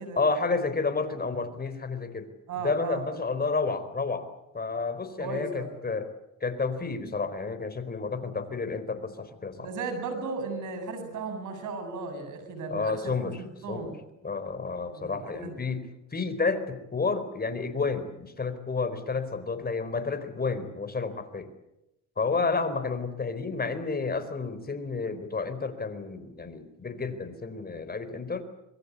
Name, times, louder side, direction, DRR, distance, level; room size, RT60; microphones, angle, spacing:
voice 1, 0.2-2.3 2.6-6.1 6.4-9.7 12.7-13.4 13.7-13.9 14.2-15.8 16.1-21.5 22.2-28.4, left 4 dB, 30° left, 10 dB, 4.3 m, -30 dB
voice 2, 2.5-3.0 5.2-5.7 9.6-14.0 14.9-15.5 22.4-22.5, right 4 dB, 80° right, 8 dB, 7.8 m, -36 dB
25.5 x 23.0 x 8.3 m, 0.91 s
cardioid pair, 90°, 30 cm